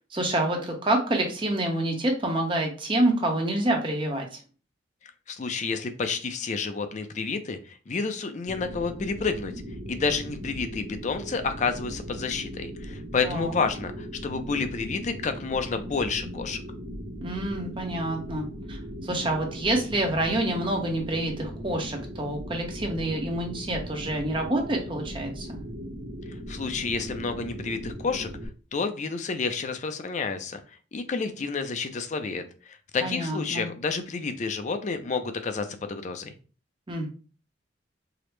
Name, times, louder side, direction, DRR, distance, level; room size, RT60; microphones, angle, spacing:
voice 1, 0.1-4.4 13.2-13.5 17.2-18.8 19.0-25.6 33.0-33.7 36.9-37.1, right 1 dB, 25° right, 2 dB, 0.7 m, -27 dB
voice 2, 5.3-9.5 9.9-16.6 26.5-28.3 28.7-30.6 30.9-36.3, left 4 dB, 40° left, 8 dB, 0.4 m, -30 dB
sound 1, 8.5-28.5, equal, 70° right, 0.8 m, -38 dB
4.8 x 2.0 x 3.1 m, 0.37 s
head